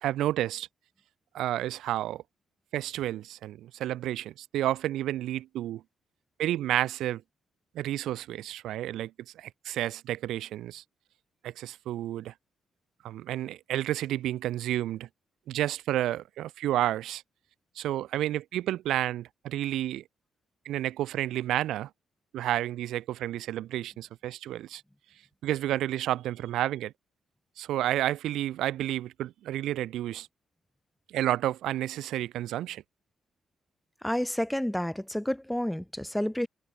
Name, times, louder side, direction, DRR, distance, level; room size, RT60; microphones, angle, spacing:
voice 1, 0.0-0.7 1.3-2.2 2.7-5.8 6.4-7.2 7.7-10.8 11.4-12.3 13.0-15.1 15.5-17.2 17.8-20.0 20.6-21.9 22.3-24.8 25.4-26.9 27.6-30.3 31.1-32.8, right 13 dB, 80° right, 4.1 m, -30 dB
voice 2, 34.0-36.5, equal, 5° left, 3.5 m, -30 dB
cardioid pair, 90°, 0 cm